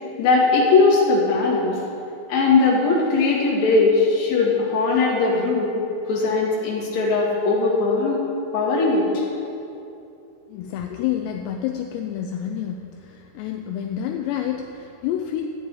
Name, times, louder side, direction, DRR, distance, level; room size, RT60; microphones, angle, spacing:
voice 1, 0.2-1.8 2.3-5.7 6.1-8.2 8.5-9.2, left 3 dB, 45° left, -5 dB, 2.8 m, -19 dB
voice 2, 10.5-15.5, left 10 dB, 85° left, 3 dB, 2.7 m, -28 dB
13.5 x 9.2 x 4.7 m, 2.7 s
omnidirectional pair, 5.1 m